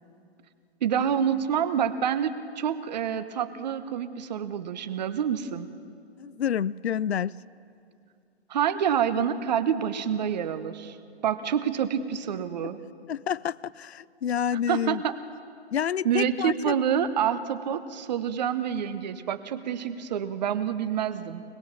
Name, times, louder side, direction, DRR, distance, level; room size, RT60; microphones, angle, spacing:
voice 1, 0.8-5.7 8.5-11.0 11.2-12.8 14.7-15.2 16.0-21.4, right 8 dB, 40° right, 1.0 m, -27 dB
voice 2, 6.2-7.3 13.1-15.0 15.7-16.8, left 9 dB, 65° left, 0.5 m, -28 dB
24.5 x 20.0 x 7.2 m
figure-of-eight pair, 125°, 34 cm